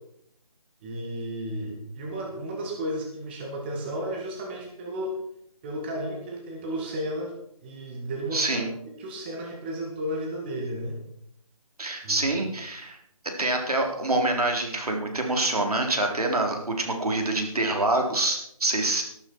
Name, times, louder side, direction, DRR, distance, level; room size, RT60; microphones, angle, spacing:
voice 1, 0.8-5.2 5.6-7.3 7.6-11.0 12.0-12.3, equal, 15° right, 0 dB, 2.0 m, -33 dB
voice 2, 8.3-8.7 11.8-13.0 13.2-19.0, right 2 dB, 80° right, 3 dB, 3.9 m, -26 dB
14.0 x 12.0 x 4.6 m, 0.70 s
figure-of-eight pair, 170°, 19 cm